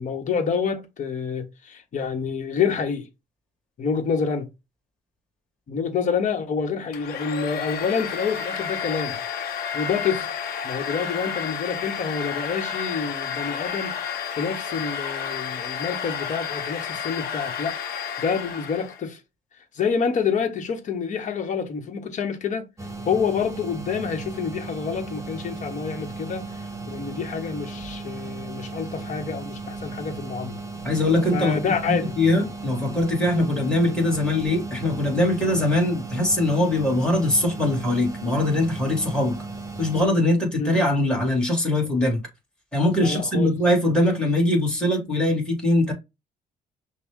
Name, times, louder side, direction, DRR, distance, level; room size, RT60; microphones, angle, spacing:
voice 1, 0.0-3.1 3.8-4.5 5.7-9.2 9.7-10.3 10.6-14.0 14.4-17.7 18.2-19.2 19.7-22.7 23.0-30.6 31.3-32.1 35.4-35.6 40.6-40.7 43.0-43.5, left 6 dB, 45° left, 1.3 m, -27 dB
Domestic sounds home sounds, 6.9-19.0, left 7 dB, 65° left, 0.9 m, -31 dB
sound 1, 22.8-40.1, right 3 dB, 20° right, 1.3 m, -36 dB
voice 2, 30.8-31.6 31.9-39.4 39.8-42.2 42.7-45.9, left 1 dB, 5° left, 2.4 m, -22 dB
5.8 x 2.4 x 3.7 m
cardioid pair, 110°, 17 cm